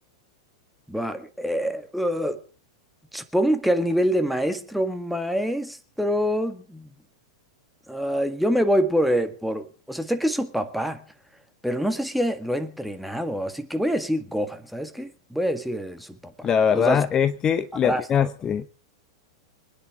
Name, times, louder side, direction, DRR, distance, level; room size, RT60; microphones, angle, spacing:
voice 1, 0.9-2.4 3.1-6.9 7.9-11.0 11.6-17.0 17.8-18.0, equal, ahead, 1.8 m, -26 dB
voice 2, 16.4-18.7, left 8 dB, 25° left, 0.8 m, -22 dB
25.0 x 9.7 x 4.8 m
hypercardioid pair, 100°, 3 cm